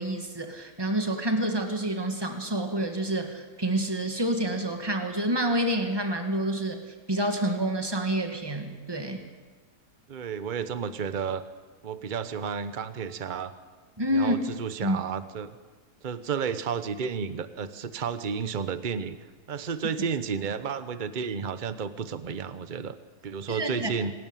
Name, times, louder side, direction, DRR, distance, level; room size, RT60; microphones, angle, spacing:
voice 1, 0.0-6.8 7.1-9.2 14.0-14.4 14.8-15.0 23.5-23.9, right 1 dB, 15° right, 5 dB, 2.1 m, -28 dB
voice 2, 10.1-11.4 11.8-13.5 14.1-15.6 16.0-19.2 19.5-23.0 23.2-24.1, right 6 dB, 35° right, 12 dB, 1.0 m, -32 dB
26.0 x 13.0 x 9.1 m, 1.3 s
omnidirectional pair, 1.7 m